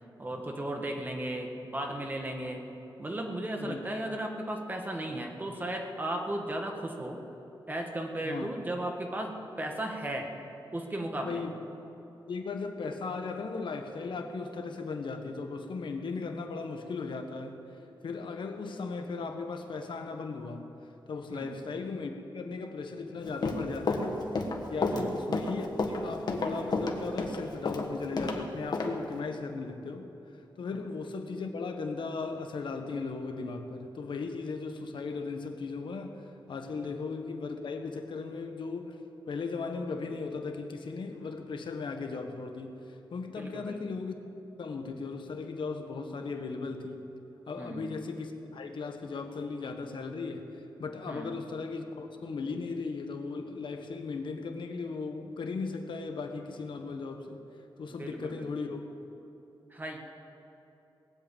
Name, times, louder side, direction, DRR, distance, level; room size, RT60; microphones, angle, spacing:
voice 1, 0.2-2.6 3.0-7.2 7.7-10.3 10.7-11.4 21.3-21.5 24.9-25.1 43.4-43.8 47.6-47.9 51.1-51.3 58.0-58.5 59.7-60.0, right 1 dB, 20° right, 2 dB, 1.4 m, -35 dB
voice 2, 11.1-11.5 12.3-20.6 21.1-24.2 24.7-39.0 39.3-44.2 44.6-47.1 47.5-57.4 57.8-58.8, left 4 dB, 75° left, 5 dB, 1.3 m, -37 dB
Run, 23.2-28.4 28.7-28.9, left 3 dB, 55° left, 1.4 m, -30 dB
19.5 x 7.8 x 8.8 m, 3.0 s
wide cardioid pair, 155°, 8 cm